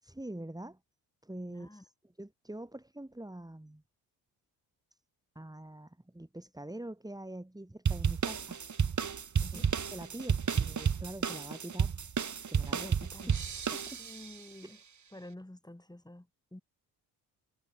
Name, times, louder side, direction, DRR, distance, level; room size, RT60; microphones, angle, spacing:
voice 1, 0.0-0.8 1.2-1.9 2.2-3.8 5.3-8.6 9.5-9.6 9.9-12.0 12.5-12.9 13.3-14.0 14.6-14.8, right 1 dB, 10° right, 4.4 m, -44 dB
voice 2, 1.5-1.8 9.4-9.7 12.7-13.4 14.0-14.8 15.1-16.6, left 1 dB, 10° left, 6.3 m, -50 dB
sound 1, 7.9-14.3, right 6 dB, 40° right, 2.3 m, -32 dB
hypercardioid pair, 50°, 46 cm